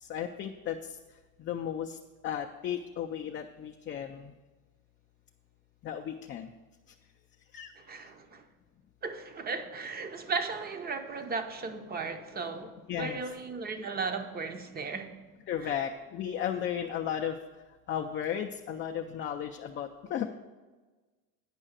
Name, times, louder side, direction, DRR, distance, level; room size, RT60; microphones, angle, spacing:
voice 1, 0.0-1.0 1.4-2.0 2.2-4.3 5.8-6.5 7.5-7.7 12.9-13.2 15.5-17.4 17.9-20.3, left 9 dB, 30° left, 2 dB, 0.4 m, -34 dB
voice 2, 7.9-8.4 9.0-15.1 15.6-15.8, right 4 dB, 20° right, 8 dB, 0.7 m, -36 dB
9.9 x 5.5 x 6.4 m, 1.3 s
cardioid pair, 140°, 43 cm